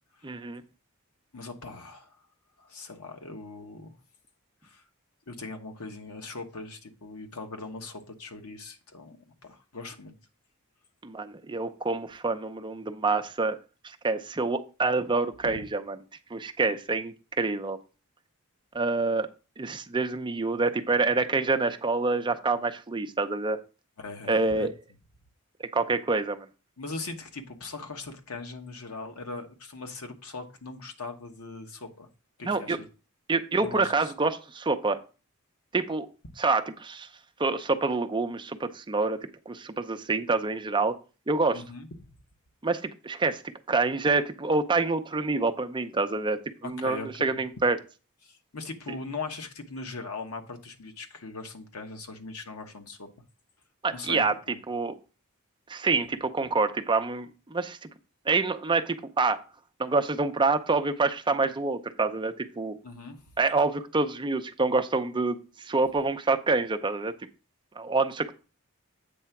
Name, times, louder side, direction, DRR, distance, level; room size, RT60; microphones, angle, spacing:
voice 1, 0.2-0.6 11.0-13.6 13.8-16.0 16.3-17.8 18.7-19.3 19.6-23.6 24.3-24.7 25.7-26.5 32.4-32.8 33.3-35.0 35.7-36.1 36.4-37.1 37.4-39.2 39.5-40.9 41.3-41.6 42.6-43.4 43.7-47.8 53.8-54.3 54.7-54.9 55.7-57.8 58.3-59.4 59.8-62.8 63.4-67.1 67.8-68.3, right 3 dB, 20° right, 8 dB, 0.5 m, -27 dB
voice 2, 1.3-2.2 2.6-3.9 4.6-4.8 5.3-9.2 9.4-10.1 15.4-15.6 24.0-24.7 26.8-32.1 32.4-32.9 33.6-34.1 41.5-42.1 46.6-47.4 48.2-53.1 53.9-54.6 62.8-63.3, left 3 dB, 80° left, 4 dB, 1.1 m, -40 dB
8.4 x 3.3 x 5.9 m, 0.33 s
head